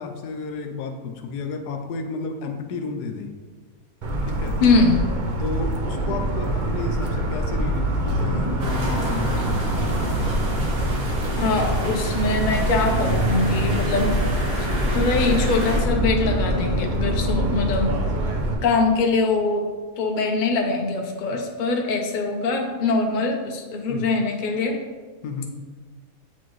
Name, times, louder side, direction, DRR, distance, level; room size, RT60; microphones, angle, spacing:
voice 1, 0.0-3.3 4.2-4.6 5.4-9.6 23.9-24.1 25.2-25.6, left 4 dB, 80° left, 5 dB, 1.2 m, -32 dB
Motor vehicle (road) / Siren, 4.0-18.5, right 1 dB, 50° right, 0.6 m, -24 dB
voice 2, 4.6-5.0 11.4-14.1 14.9-17.9 18.6-19.6 20.0-24.8, left 3 dB, 50° left, 2 dB, 0.6 m, -22 dB
sound 1, 8.6-15.8, equal, 75° right, 2.0 m, -31 dB
8.0 x 4.5 x 3.1 m, 1.4 s
omnidirectional pair, 1.7 m